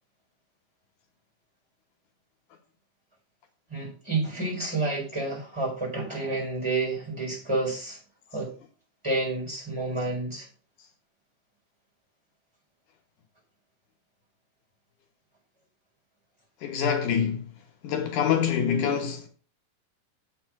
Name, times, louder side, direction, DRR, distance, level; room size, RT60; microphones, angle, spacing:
voice 1, 3.7-8.0 8.3-8.5 9.0-10.5, right 2 dB, 10° right, 4.5 m, -29 dB
voice 2, 16.6-17.4 17.8-19.3, left 7 dB, 80° left, 2.7 m, -25 dB
7.8 x 5.6 x 5.9 m
omnidirectional pair, 3.5 m